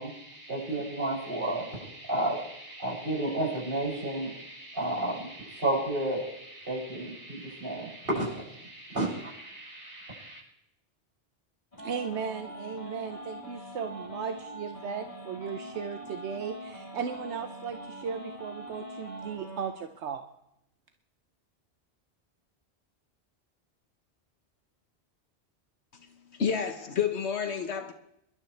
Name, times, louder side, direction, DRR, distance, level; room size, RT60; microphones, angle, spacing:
voice 1, 0.0-10.4, right 1 dB, 55° right, 6.9 m, -32 dB
sound 1, 11.7-19.7, equal, 40° left, 4.6 m, -43 dB
voice 2, 11.8-20.3, right 7 dB, 80° right, 1.1 m, -36 dB
voice 3, 26.4-27.9, left 7 dB, 75° left, 1.5 m, -29 dB
26.5 x 12.0 x 3.3 m
omnidirectional pair, 1.1 m